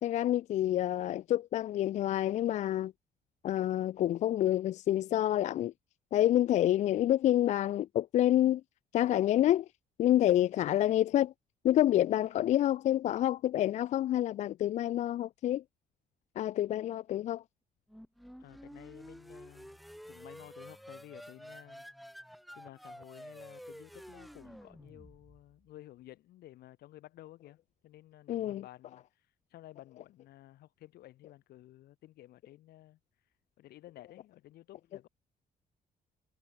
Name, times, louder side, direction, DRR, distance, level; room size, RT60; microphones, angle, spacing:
voice 1, 0.0-2.9 3.4-5.7 6.1-8.6 8.9-9.7 10.0-11.3 11.6-15.6 16.4-17.4 28.3-28.6, left 12 dB, 45° left, 0.4 m, -28 dB
sound 1, 17.9-25.5, equal, ahead, 3.0 m, -50 dB
voice 2, 18.4-19.8 20.1-21.8 22.5-33.0 33.6-35.1, left 14 dB, 80° left, 4.9 m, -54 dB
cardioid pair, 175°, 16 cm